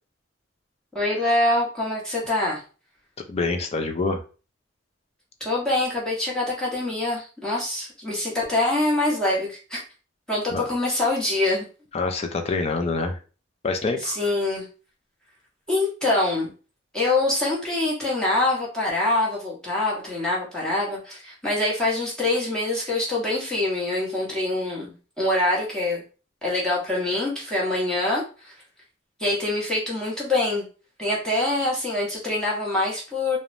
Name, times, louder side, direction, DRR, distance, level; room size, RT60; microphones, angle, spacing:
voice 1, 0.9-2.6 5.4-9.8 10.3-11.7 14.0-14.7 15.7-16.5 16.9-26.0 26.4-28.5 29.2-30.6 31.0-33.4, left 2 dB, 5° left, -6 dB, 1.0 m, -25 dB
voice 2, 3.3-4.2 10.5-10.7 11.9-13.2 13.6-14.2, left 3 dB, 30° left, 5 dB, 0.4 m, -26 dB
3.1 x 2.1 x 2.5 m, 0.36 s
head